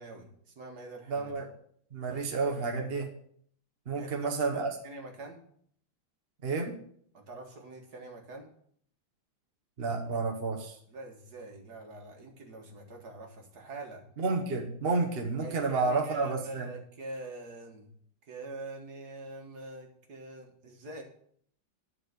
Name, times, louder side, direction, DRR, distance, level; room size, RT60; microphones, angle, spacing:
voice 1, 0.0-1.4 2.1-2.9 4.0-5.4 7.1-8.5 10.9-14.0 15.4-17.9 18.3-21.0, right 2 dB, 55° right, 2 dB, 2.0 m, -45 dB
voice 2, 1.1-1.5 1.9-3.1 3.9-4.7 6.4-6.7 9.8-10.8 14.2-16.7, right 4 dB, 35° right, 2 dB, 1.1 m, -30 dB
10.5 x 4.8 x 6.6 m, 0.63 s
omnidirectional pair, 2.1 m